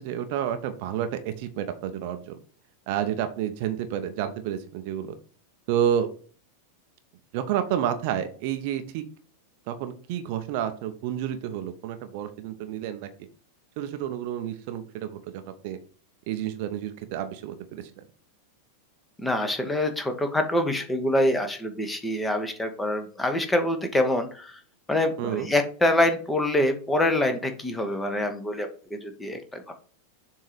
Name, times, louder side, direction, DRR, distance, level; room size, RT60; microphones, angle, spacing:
voice 1, 0.0-2.4 2.9-5.1 5.7-6.1 7.3-9.0 9.7-13.3 13.8-15.8 16.3-17.8 25.2-25.5, right 10 dB, 45° right, 9 dB, 0.6 m, -30 dB
voice 2, 19.2-24.6 24.9-29.7, left 1 dB, 10° left, 7 dB, 0.9 m, -25 dB
7.0 x 2.8 x 5.0 m, 0.42 s
figure-of-eight pair, 90°, 0 cm